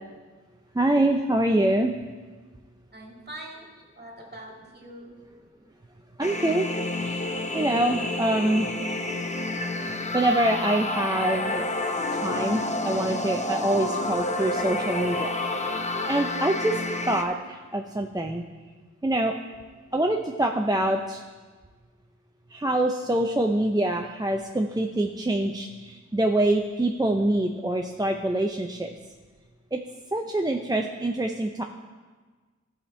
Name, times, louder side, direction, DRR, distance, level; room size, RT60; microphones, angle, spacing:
voice 1, 0.7-1.9 6.2-6.7 7.0-7.3 7.5-8.7 10.1-11.6 12.1-16.8 17.1-18.4 19.0-19.3 19.9-21.2 22.5-28.9 29.7-29.8 30.1-31.6, right 1 dB, 15° right, 2 dB, 0.5 m, -25 dB
voice 2, 2.9-3.7 4.0-5.2, right 1 dB, 35° right, -1 dB, 2.0 m, -43 dB
sound 1, 6.2-17.2, left 2 dB, 25° left, 0.7 m, -29 dB
12.5 x 5.1 x 4.3 m, 1.4 s
wide cardioid pair, 55°, 29 cm